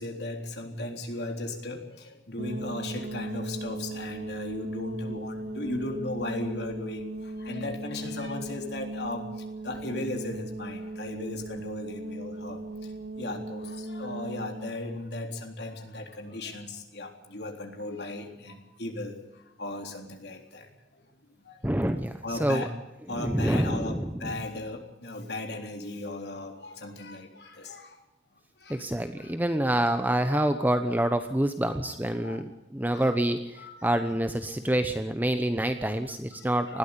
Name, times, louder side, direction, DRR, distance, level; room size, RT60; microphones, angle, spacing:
voice 1, 0.0-1.8 2.3-7.0 7.5-9.2 9.6-12.6 13.2-13.6 13.9-18.5 18.8-19.1 19.6-20.6 21.5-21.6 22.2-22.7 23.1-27.9 28.7-28.8 31.8-31.9 32.2-32.4 32.9-33.1 33.6-34.0 36.7-36.8, left 2 dB, 65° left, 3 dB, 3.7 m, -36 dB
sound 1, 2.4-14.7, right 1 dB, 75° right, 2.1 m, -37 dB
voice 2, 21.6-22.7 23.0-24.4 28.7-36.8, right 1 dB, 10° right, 8 dB, 0.9 m, -27 dB
20.0 x 14.0 x 9.9 m, 1.0 s
head